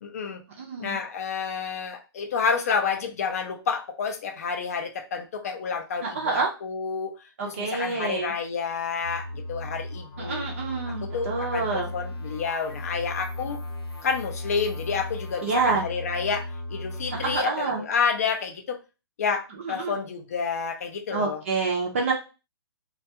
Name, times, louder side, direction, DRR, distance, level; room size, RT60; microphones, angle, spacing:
voice 1, 0.0-0.4 0.8-7.1 7.5-10.5 10.9-13.6 14.0-18.8 19.2-21.4, left 5 dB, 35° left, 5 dB, 0.4 m, -29 dB
voice 2, 0.6-1.0 6.0-6.5 7.4-8.3 10.2-11.9 15.4-15.8 17.2-17.8 19.6-19.9 21.1-22.1, right 4 dB, 30° right, -1 dB, 0.5 m, -27 dB
sound 1, 9.0-17.4, left 1 dB, 80° left, 0.8 m, -36 dB
2.3 x 2.3 x 2.7 m, 0.30 s
hypercardioid pair, 170°, 13 cm